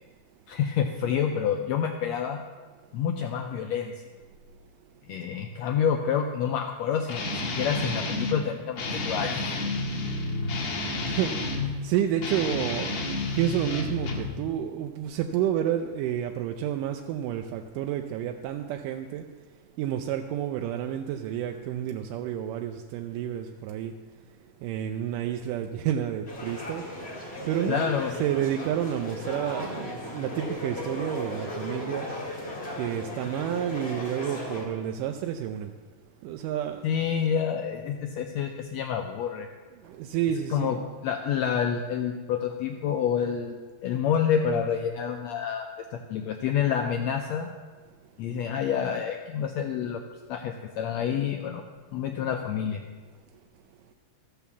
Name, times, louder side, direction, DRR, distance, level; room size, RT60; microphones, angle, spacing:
voice 1, 0.5-2.4 2.9-3.9 5.1-9.5 27.7-28.2 36.8-39.5 40.5-40.8 41.0-47.5 48.2-50.0 50.3-51.6 51.9-52.8, left 8 dB, 85° left, 4 dB, 1.6 m, -28 dB
Guitar, 7.1-8.4 8.8-11.7 12.2-14.3, left 2 dB, 50° left, 1.8 m, -30 dB
voice 2, 11.0-19.3 19.8-26.9 27.5-32.2 32.8-35.8 36.2-36.9 39.8-40.8, right 10 dB, 85° right, 5 dB, 2.2 m, -30 dB
sound 1, 26.3-34.6, left 1 dB, 20° left, 2.1 m, -36 dB
13.5 x 5.6 x 7.0 m, 1.4 s
omnidirectional pair, 3.7 m